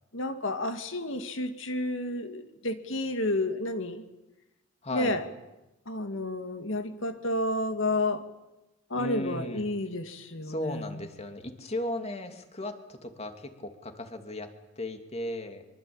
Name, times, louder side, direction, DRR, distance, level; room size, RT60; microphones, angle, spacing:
voice 1, 0.1-4.0 4.9-5.2 5.9-8.2 8.9-10.8, left 2 dB, 65° left, 8 dB, 2.3 m, -31 dB
voice 2, 4.8-5.1 8.9-9.6 10.4-14.5 14.8-15.6, left 1 dB, 30° left, 6 dB, 2.8 m, -36 dB
24.5 x 24.5 x 8.9 m, 0.99 s
head